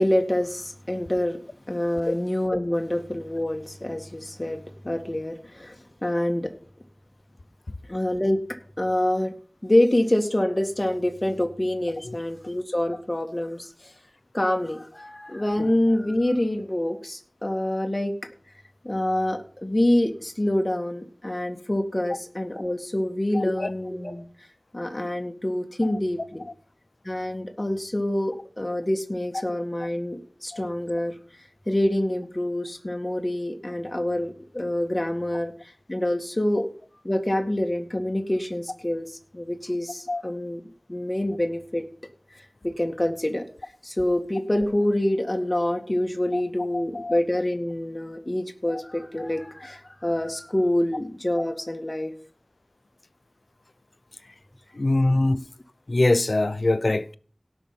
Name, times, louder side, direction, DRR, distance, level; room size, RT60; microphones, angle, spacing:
voice 1, 0.0-1.4 1.7-6.5 7.9-9.3 9.6-13.9 14.3-18.1 18.8-24.2 24.7-26.4 27.0-31.2 31.7-35.5 35.9-36.7 37.0-40.6 40.9-41.8 42.6-43.5 43.8-52.1, left 1 dB, 40° left, 2.0 m, -26 dB
voice 2, 23.3-23.7 30.5-30.6 40.1-40.2 46.3-46.4 46.7-47.2 48.7-48.8 54.7-55.4 55.9-57.1, left 2 dB, 80° left, 0.7 m, -23 dB
17.5 x 6.2 x 6.0 m
wide cardioid pair, 40°, 0 cm